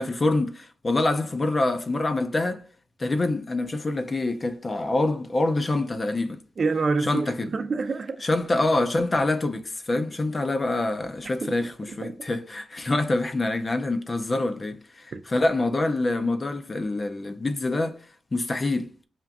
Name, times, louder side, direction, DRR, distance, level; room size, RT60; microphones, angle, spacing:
voice 1, 0.0-2.6 3.0-6.4 7.0-7.5 8.2-18.0 18.3-18.9, left 2 dB, 30° left, 0.4 m, -26 dB
voice 2, 6.6-8.2 11.4-11.5 12.0-12.1 15.1-15.2, right 4 dB, 45° right, 0.6 m, -26 dB
5.7 x 2.5 x 2.3 m
cardioid pair, 95°, 0 cm